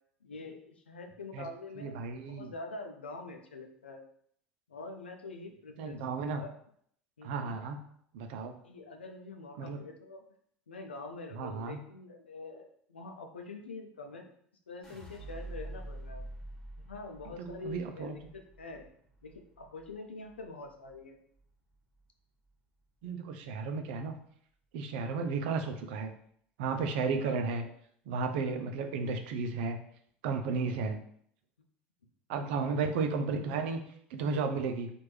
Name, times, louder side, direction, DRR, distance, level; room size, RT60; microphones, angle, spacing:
voice 1, 0.2-2.0 2.3-4.0 4.7-6.5 7.2-7.5 8.6-10.2 10.7-14.3 14.7-16.2 16.9-18.9 19.2-21.2 27.2-27.7 28.4-28.9 30.6-31.0 32.3-32.8, left 3 dB, 85° left, 4 dB, 0.5 m, -45 dB
voice 2, 1.8-2.5 5.8-6.4 7.2-7.8 8.1-8.6 9.6-9.8 11.4-11.8 17.4-18.2 23.0-24.2 24.7-26.1 26.6-27.6 28.1-29.8 30.2-31.0 32.3-33.8 34.1-34.9, right 4 dB, 65° right, 6 dB, 0.5 m, -33 dB
sound 1, 14.8-21.0 21.4-22.0, right 1 dB, 10° left, 1.4 m, -47 dB
4.4 x 2.5 x 3.2 m, 0.65 s
hypercardioid pair, 75°, 6 cm